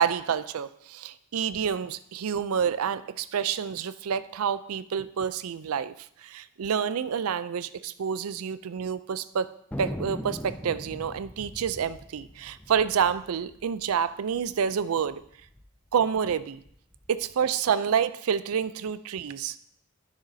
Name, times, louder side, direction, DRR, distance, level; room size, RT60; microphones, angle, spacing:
voice 1, 0.0-9.5 9.8-15.2 15.9-16.6 17.1-19.6, right 7 dB, 80° right, 14 dB, 0.4 m, -28 dB
Thunder, 9.7-14.5 14.8-14.9 15.1-15.6 16.1-17.3, left 1 dB, 5° left, 0.3 m, -40 dB
12.5 x 6.4 x 2.7 m, 0.68 s
head